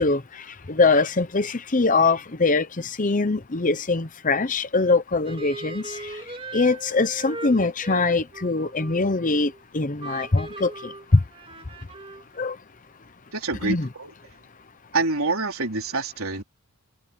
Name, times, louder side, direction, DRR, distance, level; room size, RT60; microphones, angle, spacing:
voice 1, 0.0-6.1 6.5-10.9 12.4-12.6 13.6-13.9, left 3 dB, 35° left, 0.8 m, -23 dB
sound 1, 5.2-9.6 10.0-12.4, right 2 dB, 25° right, 2.6 m, -39 dB
voice 2, 13.3-14.1 14.9-16.4, right 3 dB, 70° right, 4.3 m, -26 dB
head